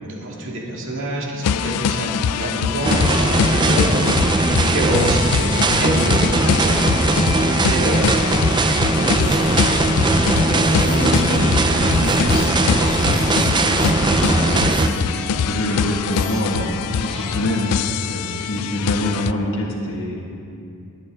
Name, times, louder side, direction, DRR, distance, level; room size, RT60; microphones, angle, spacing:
voice 1, 0.0-4.0 4.5-8.2 8.8-9.5, right 1 dB, 60° right, -2 dB, 2.1 m, -27 dB
sound 1, 1.4-19.3, left 7 dB, 85° left, 0.3 m, -23 dB
sound 2, 2.8-14.9, right 2 dB, 20° right, 0.4 m, -19 dB
sound 3, 9.2-17.3, equal, ahead, 3.5 m, -35 dB
voice 2, 10.3-16.7 17.0-17.6 18.0-20.2, left 1 dB, 65° left, -2 dB, 1.7 m, -26 dB
20.0 x 8.8 x 3.6 m, 2.4 s
head